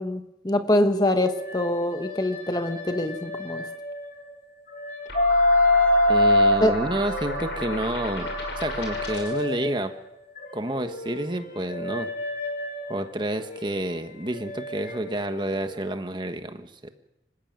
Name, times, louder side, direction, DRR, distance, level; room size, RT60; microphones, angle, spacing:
voice 1, 0.0-3.7 6.6-6.7, left 1 dB, 20° left, 7 dB, 1.3 m, -24 dB
sound 1, 0.7-4.3 4.7-9.9 10.4-15.9, left 1 dB, 50° left, 4.3 m, -27 dB
sound 2, 5.1-9.5, left 1 dB, 75° left, 5.9 m, -34 dB
voice 2, 6.1-10.0 10.5-12.1 12.9-16.9, right 1 dB, 25° right, 7 dB, 1.5 m, -29 dB
26.5 x 15.0 x 9.0 m, 0.86 s
head